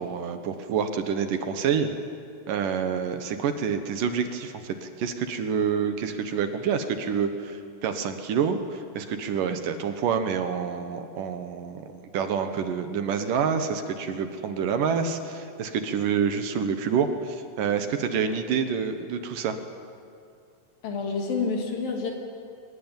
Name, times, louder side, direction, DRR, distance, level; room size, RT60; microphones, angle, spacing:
voice 1, 0.0-1.9 2.5-19.6, right 6 dB, 70° right, 8 dB, 2.8 m, -27 dB
voice 2, 20.8-22.1, left 4 dB, 75° left, 1 dB, 4.7 m, -28 dB
22.5 x 20.0 x 9.0 m, 2.4 s
omnidirectional pair, 4.1 m